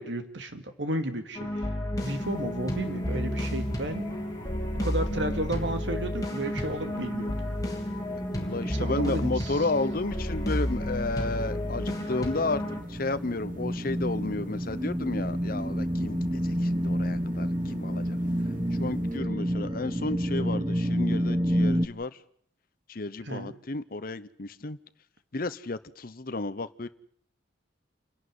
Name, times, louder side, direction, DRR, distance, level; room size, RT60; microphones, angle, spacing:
voice 1, 0.0-1.7 2.0-4.0 4.8-7.3 8.8-9.6 23.2-23.5, right 1 dB, 65° right, 7 dB, 2.4 m, -33 dB
sound 1, 1.3-12.8, left 1 dB, 20° left, 3.1 m, -31 dB
sound 2, 2.0-19.2, equal, 45° right, 3.2 m, -45 dB
voice 2, 8.2-12.6 12.9-18.0 18.8-22.1 22.9-24.8 25.3-26.9, left 2 dB, 50° left, 12 dB, 0.8 m, -32 dB
sound 3, 10.5-21.9, equal, 20° right, 1.0 m, -29 dB
28.0 x 11.5 x 9.6 m, 0.65 s
head